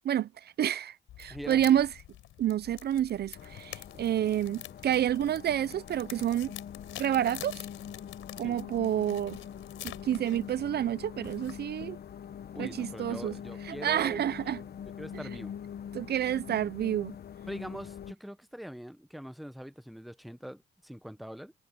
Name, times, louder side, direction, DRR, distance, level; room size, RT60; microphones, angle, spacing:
voice 1, 0.0-1.9 2.4-6.5 7.0-7.6 8.4-9.4 9.8-12.0 12.6-13.3 13.6-14.6 15.9-17.1, right 11 dB, 55° right, 0.5 m, -29 dB
sound 1, 1.1-11.9, left 14 dB, 90° left, 4.2 m, -48 dB
voice 2, 1.3-1.8 8.4-8.6 12.5-14.2 14.5-14.6 15.0-15.5 17.5-21.5, equal, ahead, 0.9 m, -43 dB
sound 2, 3.3-18.1, left 8 dB, 55° left, 1.1 m, -44 dB
cardioid pair, 90°, 20 cm